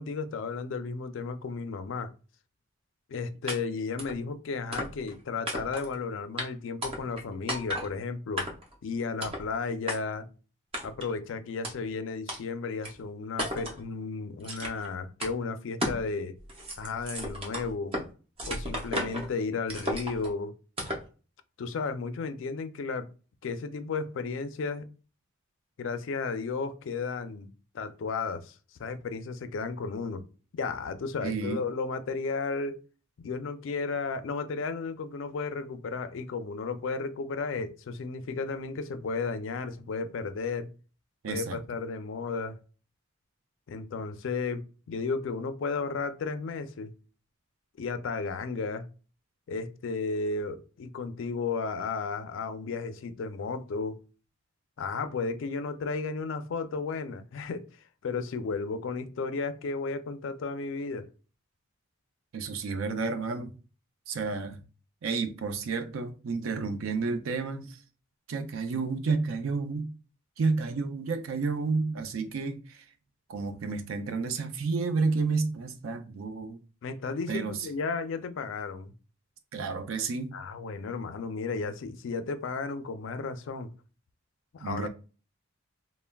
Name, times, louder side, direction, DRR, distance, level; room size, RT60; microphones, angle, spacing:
voice 1, 0.0-2.1 3.1-8.5 8.8-10.3 10.8-16.3 16.8-18.0 18.5-20.5 21.6-23.1 23.4-24.9 25.8-30.2 30.5-32.8 33.2-40.7 41.3-42.6 43.7-46.9 47.8-48.9 49.5-54.0 54.8-57.7 58.0-61.1 76.8-78.9 80.3-83.7 84.5-84.9, left 4 dB, 65° left, 0.3 m, -33 dB
sound 1, 3.5-3.6 4.0-4.2 4.7-5.1 5.5-5.9 6.4-6.5 6.8-7.2 7.5-7.9 8.4-8.7 9.2-9.5 9.9-10.0 10.7-11.1 11.6-11.7 12.3-12.4 12.8-12.9 13.4-13.8 14.4-14.9 15.2-15.3 15.8-16.1 16.4-18.1 18.4-19.3 19.7-20.3 20.8-21.1, equal, 25° right, 0.6 m, -34 dB
voice 2, 31.2-31.7 41.2-41.6 62.3-63.5 64.1-64.6 65.0-67.8 68.3-69.9 70.4-72.8 73.3-76.6 77.3-77.6 79.5-80.4 84.6-84.9, right 4 dB, 75° right, 0.4 m, -31 dB
3.3 x 2.0 x 2.2 m
head